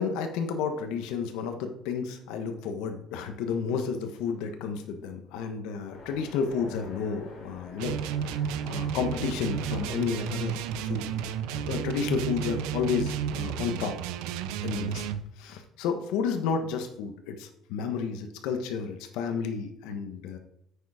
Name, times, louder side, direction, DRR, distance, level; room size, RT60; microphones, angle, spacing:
voice 1, 0.0-8.0 8.3-8.4 8.7-11.1 11.6-14.0 14.6-15.0 15.4-20.4, left 6 dB, 75° left, 6 dB, 1.3 m, -31 dB
Train, 5.9-12.8, left 3 dB, 45° left, 3.4 m, -47 dB
sound 1, 7.8-15.2, right 8 dB, 90° right, 0.7 m, -32 dB
9.1 x 6.9 x 5.0 m, 0.76 s
cardioid pair, 165°, 0 cm